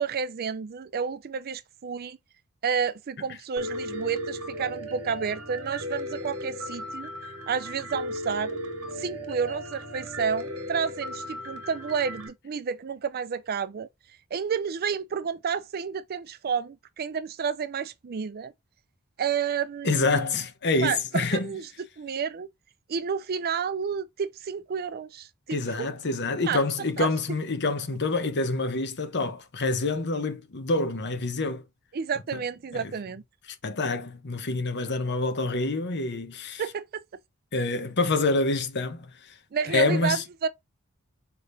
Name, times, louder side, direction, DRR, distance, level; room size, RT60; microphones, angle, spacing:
voice 1, 0.0-2.2 2.6-7.1 7.5-8.6 9.0-13.9 14.3-18.5 19.2-20.3 20.8-21.7 22.0-22.5 22.9-25.9 26.4-27.1 31.9-33.2 36.6-37.0 39.5-40.5, right 6 dB, 45° right, 0.4 m, -30 dB
Piano, 3.6-12.3, equal, 75° right, 1.4 m, -36 dB
voice 2, 19.8-21.5 25.5-31.6 32.7-32.9 33.6-36.6 37.5-39.1 39.7-40.2, left 3 dB, 50° left, 1.0 m, -27 dB
4.9 x 3.5 x 2.6 m
head